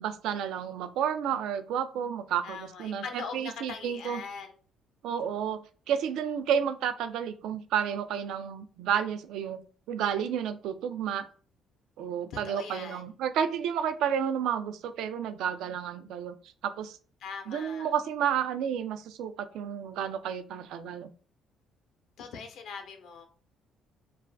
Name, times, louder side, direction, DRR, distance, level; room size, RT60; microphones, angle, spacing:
voice 1, 0.0-4.2 5.0-9.6 9.9-11.3 12.0-16.3 16.6-17.0 17.5-21.1, right 8 dB, 80° right, 10 dB, 0.3 m, -31 dB
voice 2, 2.4-4.5 12.3-13.1 17.2-17.9 22.2-23.3, left 5 dB, 75° left, 5 dB, 0.6 m, -41 dB
2.4 x 2.2 x 3.3 m, 0.41 s
cardioid pair, 95°, 0 cm